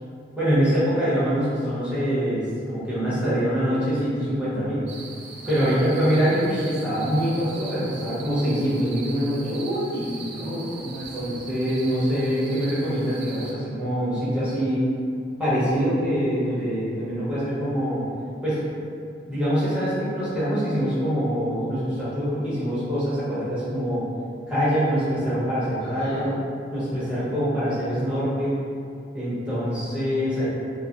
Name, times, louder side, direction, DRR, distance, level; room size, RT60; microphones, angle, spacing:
voice 1, 0.4-4.8 5.5-9.4 11.1-14.8 15.4-18.0 18.4-18.6 19.3-24.0 24.5-26.3 26.7-28.6 29.1-30.5, equal, 5° right, -12 dB, 0.9 m, -24 dB
sound 1, 4.9-13.5, right 3 dB, 70° right, 0.4 m, -41 dB
voice 2, 5.4-5.8 9.4-11.4 25.8-26.3, equal, 75° left, -14 dB, 1.0 m, -32 dB
3.1 x 2.0 x 2.5 m, 2.4 s
head